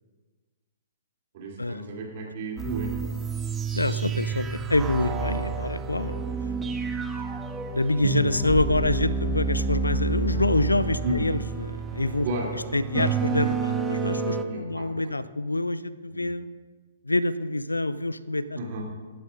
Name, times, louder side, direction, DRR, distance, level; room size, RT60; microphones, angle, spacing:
voice 1, 1.3-3.0 11.0-11.3 12.2-12.5 14.4-14.9 16.1-16.2 18.6-18.8, right 1 dB, 45° right, -2 dB, 3.3 m, -32 dB
sound 1, 2.6-14.4, right 4 dB, 15° right, 0.9 m, -29 dB
voice 2, 3.7-6.3 7.7-12.3 12.7-16.5 17.0-18.6, left 2 dB, 85° left, 17 dB, 0.4 m, -26 dB
17.5 x 11.0 x 2.7 m, 1.4 s
figure-of-eight pair, 120°, 0 cm